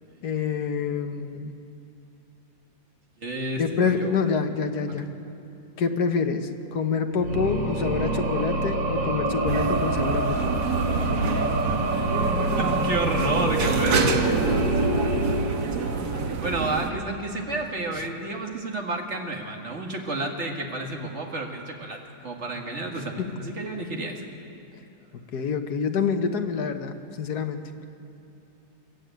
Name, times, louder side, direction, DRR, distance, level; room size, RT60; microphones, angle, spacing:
voice 1, 0.2-1.5 3.6-5.1 5.8-10.5 23.2-23.3 25.3-27.9, left 5 dB, 60° left, 6 dB, 1.6 m, -27 dB
voice 2, 3.2-4.2 4.9-5.0 12.4-14.3 16.4-24.3, right 2 dB, 40° right, 1 dB, 2.2 m, -31 dB
sound 1, 7.1-16.2, right 2 dB, 75° right, 2.9 m, -26 dB
sound 2, 9.5-16.9, right 4 dB, 60° right, 1.8 m, -28 dB
23.0 x 13.0 x 9.2 m, 2.8 s
omnidirectional pair, 2.0 m